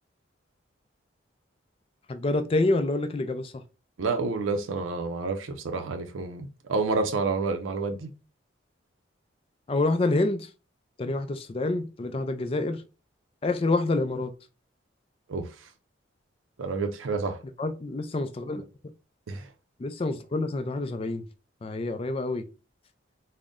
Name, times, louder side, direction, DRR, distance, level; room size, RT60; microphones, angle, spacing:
voice 1, 2.1-3.5 9.7-10.5 11.0-12.8 13.4-14.3 17.6-18.6 19.8-21.2 21.6-22.4, left 2 dB, 30° left, 0.3 m, -27 dB
voice 2, 4.0-8.1 15.3-15.5 16.6-17.4 19.3-19.5, right 4 dB, 90° right, 0.5 m, -29 dB
3.8 x 2.1 x 3.5 m
head